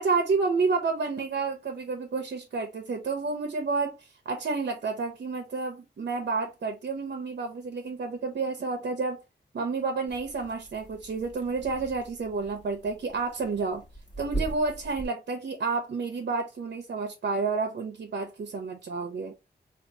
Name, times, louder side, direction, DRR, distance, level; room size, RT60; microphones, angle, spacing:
voice 1, 0.0-9.2 9.5-13.8 14.2-19.3, right 4 dB, 75° right, 0.7 m, -30 dB
sound 1, 10.1-15.1, right 2 dB, 25° left, 1.2 m, -40 dB
4.3 x 2.4 x 2.7 m
wide cardioid pair, 125°, 18 cm